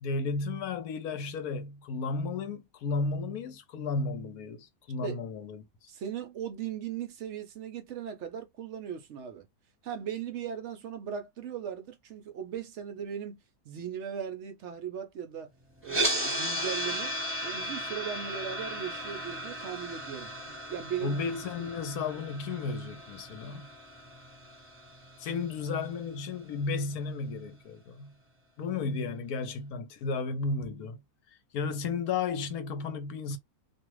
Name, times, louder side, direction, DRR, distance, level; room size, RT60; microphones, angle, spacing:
voice 1, 0.0-5.6 21.0-23.7 25.2-28.1 28.6-31.0 31.5-33.4, left 4 dB, 75° left, 1.1 m, -33 dB
voice 2, 5.9-9.5 9.8-13.4 13.7-15.5 15.8-17.2 17.4-21.2 21.6-21.7, right 8 dB, 65° right, 0.7 m, -38 dB
sound 1, 15.8-25.9, equal, 10° right, 1.3 m, -36 dB
2.6 x 2.3 x 3.0 m
omnidirectional pair, 1.6 m